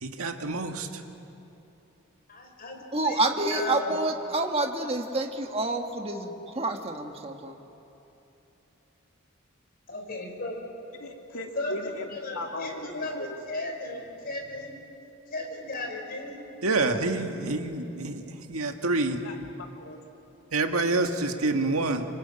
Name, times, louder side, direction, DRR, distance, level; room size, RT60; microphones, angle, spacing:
voice 1, 0.0-0.9 16.6-19.5 20.5-22.1, right 2 dB, 85° right, 5 dB, 1.8 m, -27 dB
voice 2, 2.3-2.8 3.0-4.0 9.9-10.6 11.5-14.8 15.3-16.4, left 2 dB, 45° left, 2 dB, 5.0 m, -35 dB
voice 3, 2.9-7.5, right 2 dB, 30° right, 3 dB, 1.5 m, -28 dB
voice 4, 11.0-12.1 12.3-13.4 19.2-20.0, left 2 dB, 70° left, 2 dB, 2.5 m, -37 dB
26.0 x 25.0 x 8.9 m, 3.0 s
head